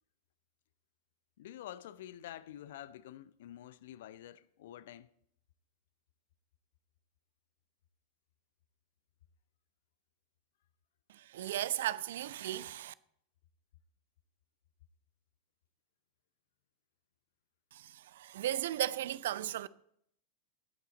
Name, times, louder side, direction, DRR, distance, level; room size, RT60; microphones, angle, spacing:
voice 1, 1.4-5.1, left 12 dB, 55° left, 0.5 m, -48 dB
voice 2, 11.1-12.9 17.7-19.7, right 12 dB, 55° right, 0.5 m, -36 dB
18.0 x 8.3 x 3.9 m
figure-of-eight pair, 90°, 0 cm